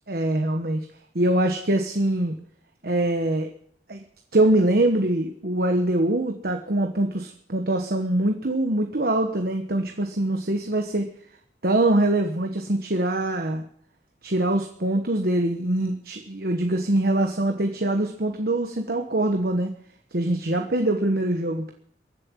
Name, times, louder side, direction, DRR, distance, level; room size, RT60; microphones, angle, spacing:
voice 1, 0.1-0.8 1.1-2.3 2.8-3.5 3.9-4.0 4.3-11.1 11.6-13.6 14.2-19.7 20.1-21.7, right 1 dB, 60° right, 4 dB, 1.2 m, -23 dB
23.0 x 7.7 x 7.4 m, 0.64 s
head